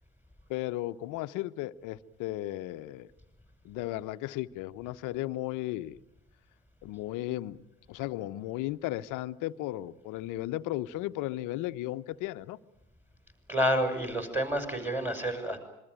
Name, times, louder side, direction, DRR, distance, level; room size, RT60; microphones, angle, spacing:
voice 1, 0.5-3.1 3.6-6.0 6.8-7.6 7.9-12.6, left 16 dB, 45° left, 12 dB, 1.1 m, -35 dB
voice 2, 13.5-15.6, equal, 5° right, 7 dB, 6.0 m, -29 dB
26.5 x 22.5 x 9.2 m, 0.86 s
hypercardioid pair, 85°, 44 cm